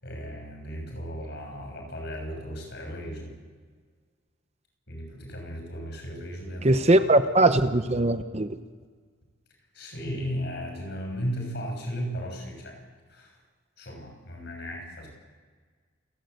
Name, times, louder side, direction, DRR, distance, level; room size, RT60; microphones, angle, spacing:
voice 1, 0.0-3.3 4.9-7.0 9.7-12.8 13.1-13.4 13.8-15.1, equal, 55° left, 2 dB, 6.6 m, -35 dB
voice 2, 6.6-8.5, right 2 dB, 30° right, 10 dB, 0.8 m, -20 dB
28.5 x 11.5 x 8.1 m, 1.5 s
head